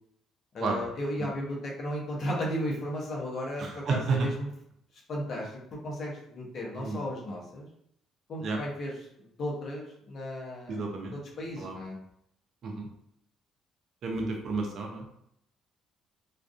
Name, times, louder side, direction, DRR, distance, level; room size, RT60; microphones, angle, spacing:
voice 1, 0.5-4.5 4.9-7.7 8.3-8.9 9.2-10.8 11.1-12.0, equal, 55° left, -2 dB, 0.8 m, -35 dB
voice 2, 3.6-4.3 6.8-7.0 8.4-8.6 10.7-11.1 11.6-11.8 12.6-12.9 14.0-15.2, right 4 dB, 60° right, 1 dB, 0.6 m, -31 dB
2.5 x 2.4 x 2.3 m, 0.73 s
hypercardioid pair, 55°, 0 cm